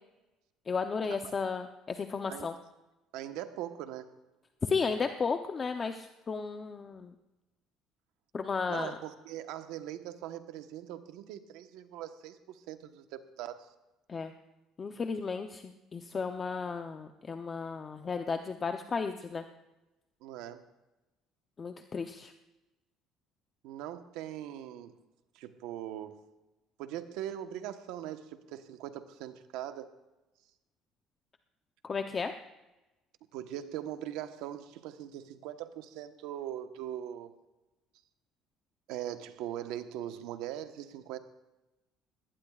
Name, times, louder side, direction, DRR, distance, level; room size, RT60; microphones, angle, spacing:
voice 1, 0.7-2.6 4.6-7.1 8.3-9.0 14.1-14.3 14.8-19.4 21.6-22.3 31.8-32.3, left 5 dB, 30° left, 6 dB, 0.7 m, -34 dB
voice 2, 3.1-4.1 8.7-13.7 20.2-20.6 23.6-24.9 25.3-26.2 26.8-29.9 33.3-37.3 38.9-41.2, right 11 dB, 85° right, 8 dB, 1.1 m, -41 dB
20.5 x 18.0 x 2.4 m, 1.0 s
cardioid pair, 135°, 0 cm